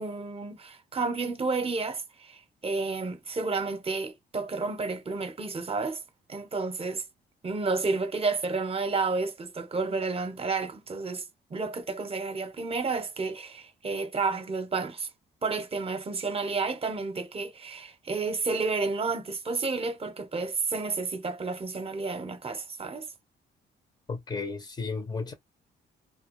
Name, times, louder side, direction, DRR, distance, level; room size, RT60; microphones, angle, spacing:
voice 1, 0.0-6.0 6.3-7.0 7.4-11.2 11.5-15.1 15.4-23.1, right 4 dB, 30° right, 0.8 m, -31 dB
voice 2, 24.1-25.3, left 4 dB, 20° left, 0.6 m, -33 dB
2.3 x 2.2 x 3.0 m
cardioid pair, 90°, 20 cm